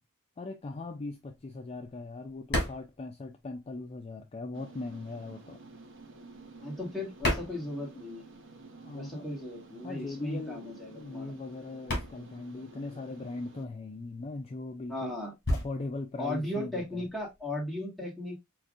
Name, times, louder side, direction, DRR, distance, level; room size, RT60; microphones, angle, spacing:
voice 1, 0.4-5.6 8.8-9.3 9.8-15.1 15.5-17.0, left 3 dB, 25° left, 0.3 m, -39 dB
sound 1, 1.0-4.0 4.3-8.4 8.7-17.5, left 1 dB, 50° left, 2.2 m, -36 dB
sound 2, 4.5-13.7, right 3 dB, 60° right, 0.8 m, -51 dB
voice 2, 6.6-8.2 8.9-11.3 14.9-15.3 16.2-18.4, left 1 dB, ahead, 1.6 m, -36 dB
5.5 x 2.5 x 2.4 m
head